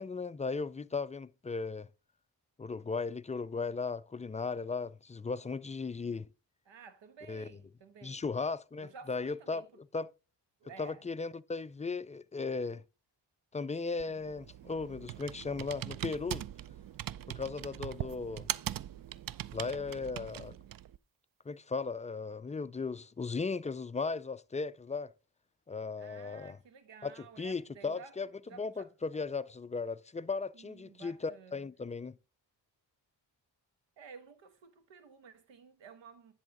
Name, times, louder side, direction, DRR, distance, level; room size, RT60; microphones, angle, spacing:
voice 1, 0.0-1.9 2.6-6.3 7.3-7.5 8.0-10.1 10.8-12.8 13.5-16.4 17.3-18.5 19.5-20.5 21.5-25.1 25.7-26.6 27.0-28.3 28.5-32.1, left 4 dB, 20° left, 0.3 m, -37 dB
voice 2, 6.6-8.2 8.8-9.7 10.6-11.0 26.0-28.2 28.5-28.9 30.5-31.7 34.0-36.3, right 6 dB, 90° right, 1.3 m, -53 dB
Computer keyboard, 14.0-21.0, right 12 dB, 50° right, 0.4 m, -41 dB
10.5 x 3.5 x 5.2 m
cardioid pair, 55°, 43 cm